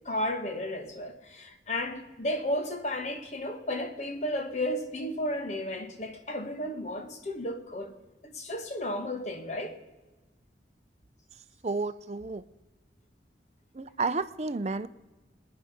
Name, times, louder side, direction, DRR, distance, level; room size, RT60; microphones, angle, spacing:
voice 1, 0.1-7.9 8.2-9.8, left 1 dB, 40° left, 1.7 m, -33 dB
voice 2, 11.6-12.4 13.7-14.9, right 3 dB, 40° right, 0.6 m, -31 dB
26.5 x 10.0 x 5.2 m
head